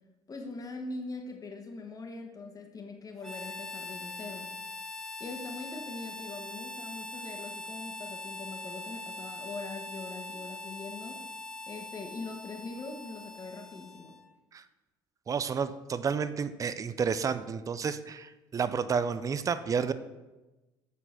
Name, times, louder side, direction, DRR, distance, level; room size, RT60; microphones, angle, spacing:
voice 1, 0.3-4.5 5.2-11.2 11.7-14.1, left 3 dB, 35° left, 3 dB, 1.5 m, -42 dB
Harmonica, 3.2-14.3, left 2 dB, 5° left, 0.7 m, -42 dB
voice 2, 15.3-19.9, right 6 dB, 30° right, 13 dB, 0.5 m, -31 dB
6.7 x 4.5 x 5.9 m, 1.1 s
hypercardioid pair, 70°, 11 cm